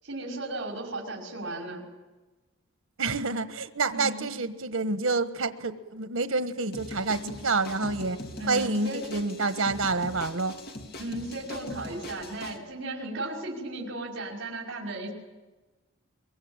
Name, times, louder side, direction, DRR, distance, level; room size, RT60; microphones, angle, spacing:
voice 1, 0.0-1.8 3.9-4.3 8.4-9.0 11.0-15.1, right 2 dB, 60° right, -1 dB, 5.6 m, -35 dB
voice 2, 3.0-8.2 8.5-10.6, right 3 dB, 85° right, 10 dB, 1.4 m, -28 dB
sound 1, 6.7-12.6, left 2 dB, 50° left, 2.8 m, -41 dB
24.0 x 23.0 x 9.0 m, 1.2 s
head